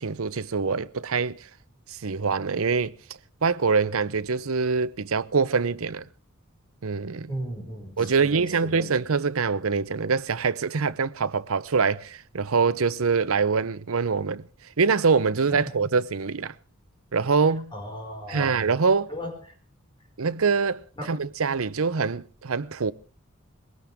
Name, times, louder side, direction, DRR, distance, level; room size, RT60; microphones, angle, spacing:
voice 1, 0.0-1.5 1.9-3.0 3.4-6.1 6.8-7.3 8.0-14.4 14.8-16.5 17.1-17.7 18.3-19.1 20.2-22.9, right 5 dB, 75° right, 0.7 m, -24 dB
voice 2, 7.3-8.9 15.5-15.7 17.7-18.6 19.1-19.3 21.0-21.2, equal, 20° left, 5.3 m, -36 dB
21.0 x 17.5 x 3.6 m
head